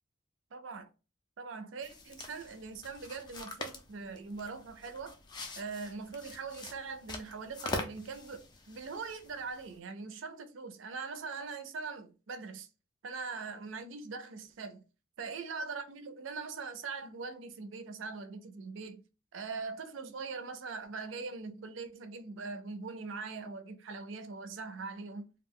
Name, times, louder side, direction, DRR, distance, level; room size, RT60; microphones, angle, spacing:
voice 1, 0.5-0.9 1.4-5.2 5.6-12.7 13.0-14.8 15.2-19.0 19.3-25.3, right 4 dB, 75° right, 0.4 m, -42 dB
sound 1, 1.8-9.8, left 2 dB, 20° left, 0.3 m, -44 dB
2.3 x 2.1 x 3.5 m
head